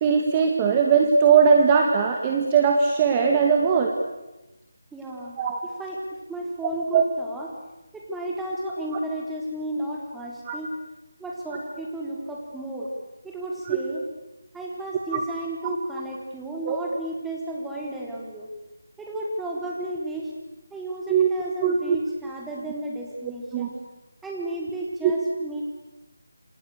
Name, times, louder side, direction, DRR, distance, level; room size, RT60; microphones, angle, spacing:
voice 1, 0.0-3.9 5.4-5.6 6.9-7.0 10.5-10.6 13.7-13.8 15.1-15.2 16.7-16.8 21.1-21.3 21.6-22.0 23.5-23.7 25.0-25.1, right 6 dB, 20° right, 3 dB, 2.1 m, -19 dB
voice 2, 4.9-5.4 5.8-6.0 6.3-7.5 7.9-10.7 11.2-12.9 13.2-14.0 14.5-18.5 19.0-20.3 20.7-23.7 24.2-25.6, right 1 dB, 5° right, -2 dB, 4.2 m, -33 dB
28.5 x 28.0 x 6.8 m, 1.0 s
figure-of-eight pair, 165°, 0 cm